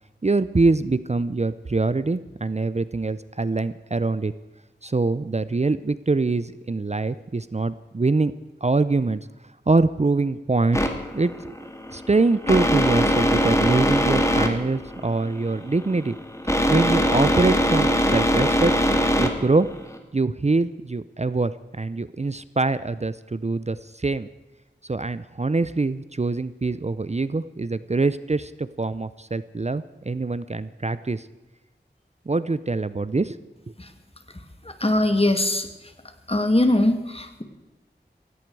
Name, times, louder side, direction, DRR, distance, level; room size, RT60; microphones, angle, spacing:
voice 1, 0.2-4.3 4.8-8.3 8.6-9.3 9.7-11.6 11.9-16.1 16.7-18.7 19.2-19.7 20.1-24.3 24.8-31.3 32.3-33.4, right 3 dB, 35° right, 15 dB, 0.5 m, -24 dB
sound 1, 10.7-20.0, equal, 15° left, 2.2 m, -22 dB
voice 2, 34.6-35.7 36.3-37.4, left 1 dB, 30° left, 7 dB, 2.0 m, -21 dB
17.0 x 16.5 x 4.7 m, 1.1 s
wide cardioid pair, 50°, 19 cm